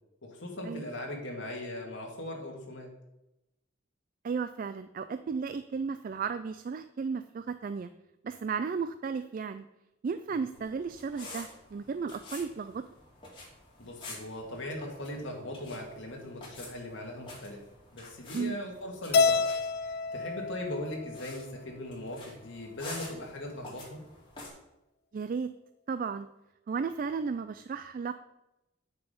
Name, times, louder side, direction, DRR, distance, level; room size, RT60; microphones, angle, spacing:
voice 1, 0.2-2.9 10.3-10.5 13.8-17.6 17.9-19.5 19.8-24.0, left 1 dB, 70° left, 0 dB, 2.1 m, -39 dB
voice 2, 4.2-7.9 8.2-9.7 10.0-12.8 18.3-18.6 25.1-25.5 25.9-26.3 26.7-28.1, right 5 dB, 45° right, 11 dB, 0.3 m, -34 dB
sound 1, 10.5-24.5, left 2 dB, 25° left, 3.0 m, -49 dB
Keyboard (musical), 19.1-21.5, left 4 dB, 50° left, 0.4 m, -28 dB
8.3 x 6.7 x 5.2 m, 0.93 s
head